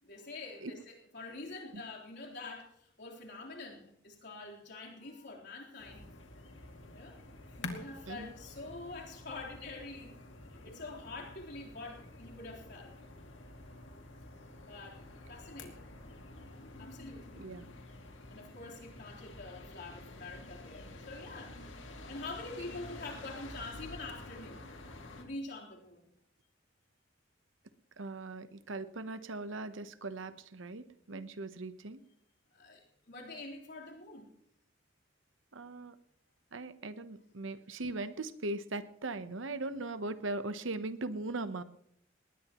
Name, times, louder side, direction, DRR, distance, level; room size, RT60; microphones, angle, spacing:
voice 1, 0.0-6.1 6.9-7.2 7.6-10.2 10.5-13.0 14.7-15.0 15.3-15.9 16.8-17.4 18.3-21.6 22.1-24.6 25.2-26.2 32.5-34.3, left 2 dB, 60° left, -2 dB, 3.8 m, -46 dB
sound 1, 5.8-25.2, left 2 dB, 80° left, 2.3 m, -49 dB
voice 2, 28.0-32.0 35.5-35.9 36.5-41.6, right 2 dB, 90° right, 12 dB, 1.0 m, -39 dB
20.0 x 19.0 x 3.1 m, 0.70 s
head